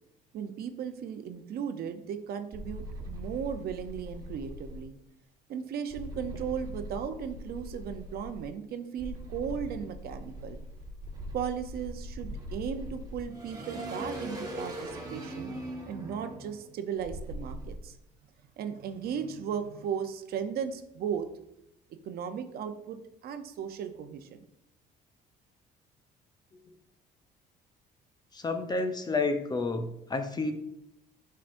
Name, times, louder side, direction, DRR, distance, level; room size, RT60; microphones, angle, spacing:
voice 1, 0.3-4.9 5.5-10.6 11.3-15.5 15.9-18.0 18.6-21.3 22.0-24.4, right 7 dB, 65° right, 8 dB, 0.7 m, -36 dB
sound 1, 2.5-4.8 5.9-8.5 9.0-17.8, equal, 20° right, 1.5 m, -40 dB
voice 2, 28.3-30.5, left 3 dB, 25° left, 8 dB, 0.7 m, -30 dB
8.7 x 5.6 x 2.6 m, 0.82 s
cardioid pair, 110°, 17 cm